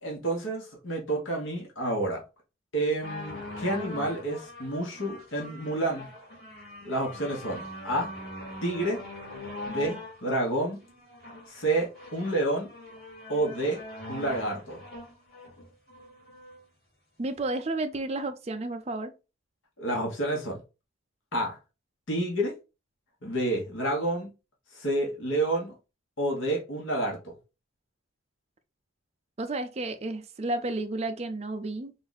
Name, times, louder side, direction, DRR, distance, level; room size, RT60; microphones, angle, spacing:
voice 1, 0.0-2.2 2.7-6.1 6.8-8.1 8.6-9.0 9.7-10.8 11.5-12.7 13.3-13.8 14.1-14.8 19.8-20.6 21.3-21.6 22.1-22.6 23.2-24.3 24.7-25.7 26.2-27.3, right 1 dB, 75° left, 1.3 m, -29 dB
sound 1, 3.0-16.6 17.4-17.5, left 1 dB, 50° left, 2.4 m, -42 dB
voice 2, 17.2-19.1 29.4-31.9, right 2 dB, 30° right, 0.4 m, -32 dB
3.8 x 2.5 x 4.0 m
head